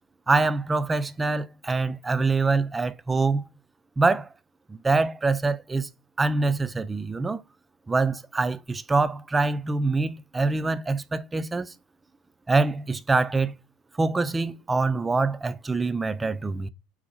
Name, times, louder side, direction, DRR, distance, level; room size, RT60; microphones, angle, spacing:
voice 1, 0.3-3.5 4.0-4.3 4.7-5.9 6.2-7.4 7.9-11.7 12.5-13.5 14.0-16.7, right 3 dB, 15° right, 0.3 m, -25 dB
4.2 x 2.0 x 4.3 m
hypercardioid pair, 75°, 0 cm